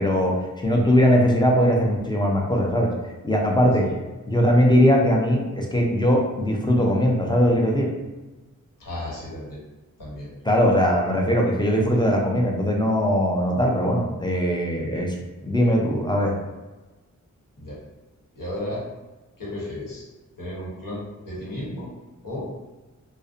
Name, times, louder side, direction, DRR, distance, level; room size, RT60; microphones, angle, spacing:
voice 1, 0.0-2.9 3.2-3.9 4.3-7.9 10.4-15.1 15.4-16.4, equal, 15° left, -1 dB, 0.4 m, -20 dB
voice 2, 8.8-9.6 10.0-10.3 17.6-17.8 18.3-18.8 19.4-20.1 20.4-21.9 22.2-22.5, left 1 dB, 85° left, -6 dB, 1.0 m, -33 dB
2.5 x 2.1 x 2.4 m, 1.2 s
cardioid pair, 55°, 32 cm